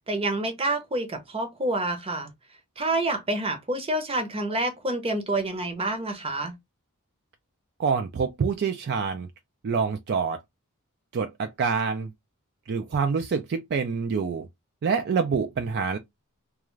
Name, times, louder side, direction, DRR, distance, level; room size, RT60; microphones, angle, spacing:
voice 1, 0.1-2.3 2.8-6.5, right 2 dB, 25° right, 0.7 m, -28 dB
voice 2, 7.8-9.3 9.6-10.4 11.1-12.1 12.7-14.5 14.8-16.0, right 5 dB, 50° right, 0.4 m, -26 dB
2.4 x 2.3 x 3.0 m
head